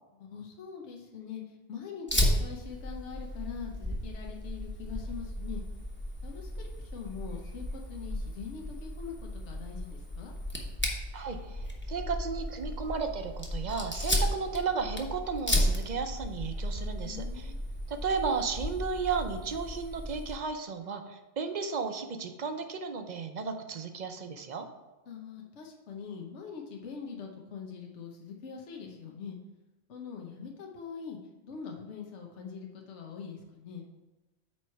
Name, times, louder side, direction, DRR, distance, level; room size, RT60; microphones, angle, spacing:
voice 1, 0.1-5.6 6.2-10.3 17.0-17.6 25.1-29.4 29.9-33.8, left 6 dB, 80° left, 0 dB, 1.1 m, -43 dB
Fire, 2.1-20.4, equal, 10° left, 0.9 m, -34 dB
voice 2, 11.1-17.5 17.9-24.7, right 5 dB, 45° right, 6 dB, 0.6 m, -34 dB
8.6 x 3.2 x 5.6 m, 1.1 s
omnidirectional pair, 1.2 m